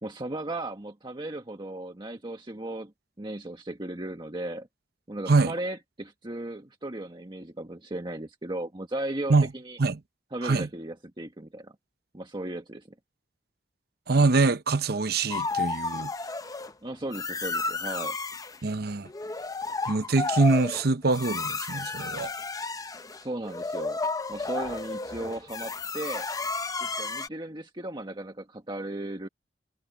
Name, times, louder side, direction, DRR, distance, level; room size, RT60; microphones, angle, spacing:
voice 1, 0.0-2.9 3.2-4.7 5.1-9.8 10.3-11.7 12.1-12.9 16.8-18.2 23.2-24.0 24.3-26.3 26.8-29.3, right 1 dB, 30° right, 1.5 m, -36 dB
voice 2, 14.1-16.1 18.6-19.1 19.9-22.3, right 3 dB, 60° right, 0.8 m, -24 dB
sound 1, 15.3-16.7 17.1-18.6 19.0-27.3, left 3 dB, 20° left, 0.7 m, -32 dB
head